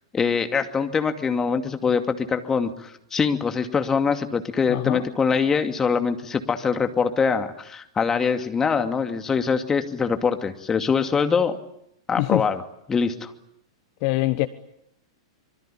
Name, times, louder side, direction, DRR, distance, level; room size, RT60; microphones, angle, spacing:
voice 1, 0.1-11.6 12.1-12.6 12.9-13.3, left 5 dB, 15° left, 2.5 m, -23 dB
voice 2, 4.7-5.0 12.1-12.4 14.0-14.5, left 21 dB, 45° left, 1.2 m, -23 dB
26.0 x 24.0 x 8.7 m
figure-of-eight pair, 105°, 3 cm